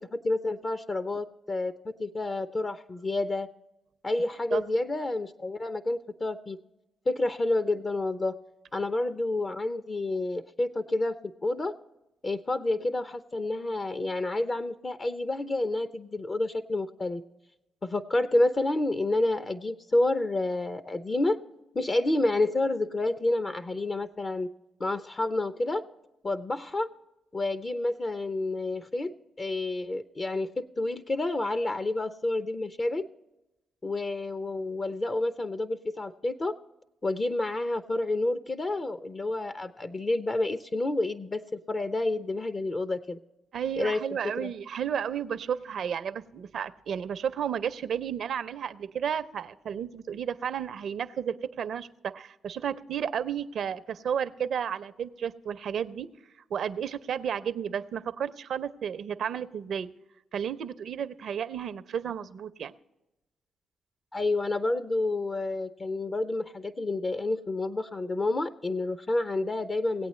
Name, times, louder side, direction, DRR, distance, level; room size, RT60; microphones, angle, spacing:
voice 1, 0.0-3.5 4.0-6.6 7.1-8.4 8.7-11.1 11.4-11.7 12.2-17.2 17.8-21.4 21.7-24.5 24.8-25.8 26.2-26.9 27.3-33.1 33.8-36.5 37.0-43.2 43.8-44.5 64.1-70.1, left 2 dB, 35° left, 11 dB, 0.6 m, -29 dB
voice 2, 43.5-56.1 56.5-59.9 60.3-62.7, right 8 dB, 65° right, 14 dB, 0.5 m, -32 dB
18.0 x 8.6 x 3.1 m, 0.94 s
supercardioid pair, 60°, 0 cm